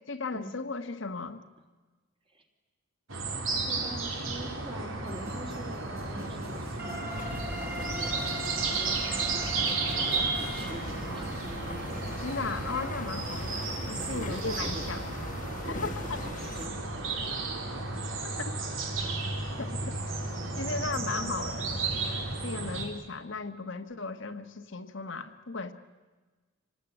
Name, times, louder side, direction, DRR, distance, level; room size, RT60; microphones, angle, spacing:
voice 1, 0.1-1.4 12.2-15.0 15.7-16.2 18.4-18.5 19.6-19.9 20.6-25.7, left 4 dB, 60° left, 7 dB, 1.3 m, -36 dB
sound 1, 3.1-22.9, right 3 dB, 70° right, 3.6 m, -33 dB
voice 2, 3.5-11.5 13.9-14.9 15.6-17.6, right 1 dB, 25° right, 3 dB, 3.1 m, -45 dB
sound 2, 5.1-12.9, right 1 dB, 45° right, 6.3 m, -41 dB
sound 3, 7.1-16.7, left 2 dB, 35° left, 1.4 m, -41 dB
26.0 x 19.0 x 9.9 m, 1.3 s
head